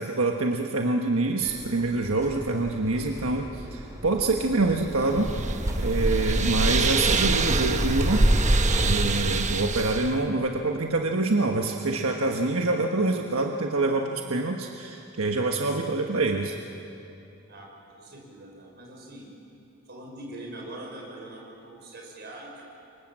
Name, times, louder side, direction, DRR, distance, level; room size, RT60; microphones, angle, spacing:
voice 1, 0.0-8.3 8.8-16.6, right 2 dB, 85° right, 2 dB, 1.4 m, -26 dB
sound 1, 1.4-8.9, equal, 15° right, 2.4 m, -36 dB
sound 2, 4.8-10.2, right 2 dB, 35° right, 1.2 m, -24 dB
voice 2, 18.0-19.3 19.9-22.6, right 1 dB, 50° right, -1 dB, 6.3 m, -42 dB
28.5 x 24.5 x 7.6 m, 2.9 s
head